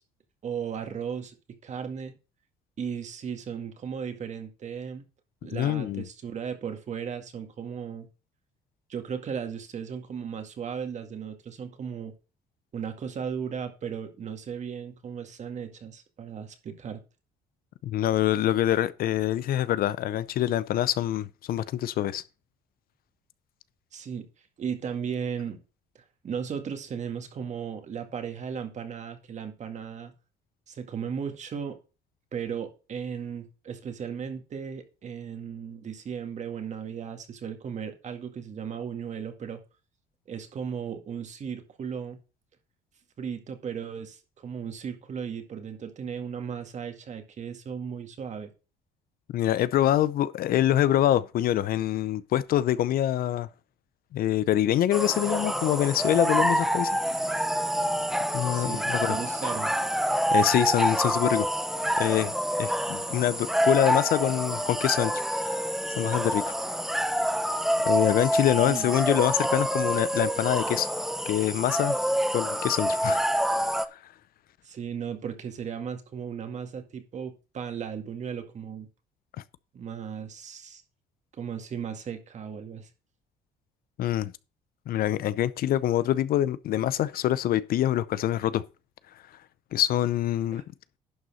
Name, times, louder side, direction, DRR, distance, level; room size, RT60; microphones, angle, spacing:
voice 1, 0.4-1.4 1.6-2.2 2.8-5.0 5.4-8.1 8.9-12.1 12.7-17.0 23.9-24.3 24.6-25.6 26.0-30.1 30.7-31.8 32.3-39.6 40.3-42.2 43.2-48.5 58.5-59.7 68.7-68.9 74.6-78.9 79.7-80.8 81.3-82.9 90.5-90.6, right 7 dB, 45° right, 1.9 m, -36 dB
voice 2, 5.5-6.0 17.8-22.2 49.3-53.5 54.1-57.0 58.3-59.2 60.3-61.5 62.0-62.3 62.6-65.1 65.4-65.6 66.0-66.5 66.9-67.0 67.8-70.9 71.3-72.0 72.3-73.2 73.9-74.0 84.0-84.3 84.9-88.6 89.7-90.6, left 12 dB, 60° left, 0.6 m, -25 dB
sound 1, 54.9-73.8, equal, ahead, 0.7 m, -27 dB
11.0 x 4.0 x 6.3 m
cardioid pair, 110°, 17 cm